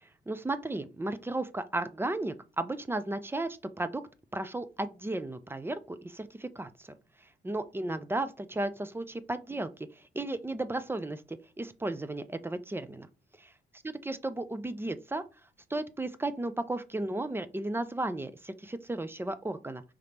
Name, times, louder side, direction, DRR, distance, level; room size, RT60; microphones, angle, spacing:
voice 1, 0.0-4.0 4.3-6.9 7.4-9.9 10.1-13.1 14.0-15.2 15.7-19.8, right 2 dB, 10° right, 0.5 m, -34 dB
5.1 x 3.2 x 2.9 m
cardioid pair, 90°, 20 cm